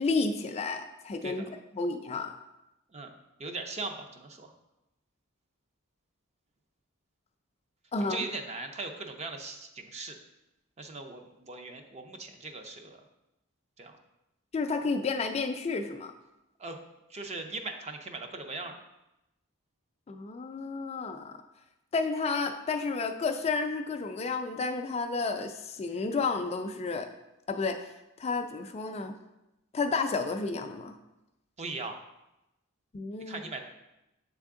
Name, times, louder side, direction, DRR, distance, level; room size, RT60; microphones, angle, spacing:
voice 1, 0.0-1.5 1.7-2.3 7.9-8.3 14.5-16.1 20.1-21.4 21.9-27.1 27.5-29.1 29.7-30.9 32.9-33.4, left 4 dB, 30° left, 6 dB, 0.3 m, -31 dB
voice 2, 3.4-4.5 8.0-10.2 10.8-13.0 13.8-14.0 16.6-16.8 17.1-18.8 31.6-32.0 33.2-33.6, right 3 dB, 30° right, 5 dB, 0.5 m, -39 dB
7.4 x 3.5 x 3.6 m, 0.92 s
head